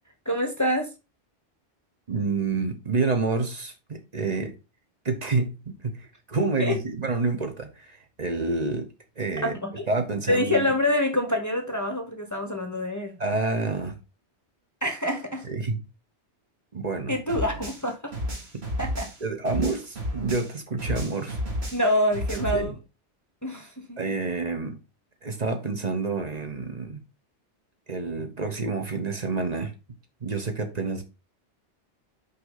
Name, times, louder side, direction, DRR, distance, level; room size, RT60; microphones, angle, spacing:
voice 1, 0.2-0.9 6.6-6.8 9.4-9.9 10.3-13.2 14.8-15.5 17.1-18.1 18.8-19.1 21.7-22.8 23.4-24.0, left 1 dB, 15° left, 1.1 m, -26 dB
voice 2, 2.1-4.5 5.0-8.9 9.2-9.6 9.9-10.7 13.2-13.9 15.5-15.8 16.7-17.1 18.5-18.6 19.2-21.4 22.3-22.8 24.0-24.8 25.2-27.0 27.9-29.7 30.2-31.0, right 3 dB, 35° right, 1.2 m, -28 dB
sound 1, 17.3-20.5 20.8-22.6, equal, 65° right, 1.9 m, -32 dB
5.7 x 4.9 x 3.9 m
omnidirectional pair, 1.2 m